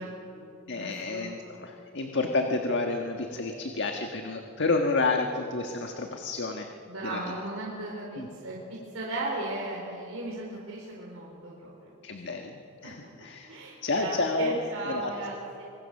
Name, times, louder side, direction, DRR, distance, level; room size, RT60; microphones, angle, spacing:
voice 1, 0.0-1.4 6.9-11.9 12.3-12.5 12.8-12.9 13.5-15.6, right 2 dB, 80° right, -3 dB, 4.1 m, -37 dB
voice 2, 0.7-6.7 7.0-7.2 8.2-8.3 12.0-14.6 14.8-15.1, left 3 dB, 60° left, 4 dB, 1.5 m, -30 dB
26.0 x 23.0 x 6.6 m, 2.8 s
head